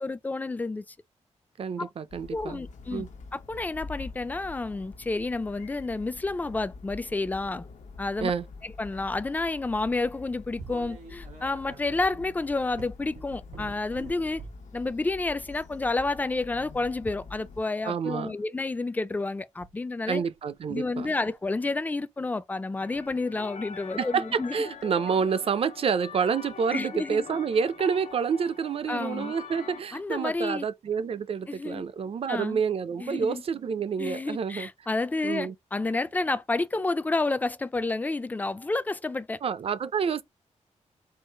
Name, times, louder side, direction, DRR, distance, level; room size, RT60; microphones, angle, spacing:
voice 1, 0.0-0.8 1.8-1.9 2.3-3.1 3.3-7.7 8.0-8.3 8.6-14.4 14.7-20.2 20.7-24.5 26.7-27.3 28.9-29.3 29.9-30.7 31.5-31.8 32.3-32.6 33.0-33.4 34.0-39.4, left 3 dB, 15° left, 0.3 m, -30 dB
voice 2, 1.6-2.6 2.9-3.1 8.2-8.5 17.8-18.4 20.1-21.1 24.0-34.7 35.2-35.5 39.4-40.2, right 6 dB, 50° right, 0.5 m, -28 dB
sound 1, 2.1-17.6, left 4 dB, 80° left, 0.9 m, -46 dB
sound 2, 10.6-14.7 15.4-15.7 17.5-17.9 19.6-19.7 20.2-20.6 21.1-21.3 22.8-23.1 24.8-25.0 26.5-26.6 28.1-28.2 28.8-28.9, right 4 dB, 85° right, 1.8 m, -47 dB
sound 3, 22.8-29.8, left 6 dB, 60° left, 0.5 m, -44 dB
4.6 x 2.4 x 4.5 m
wide cardioid pair, 165°, 12 cm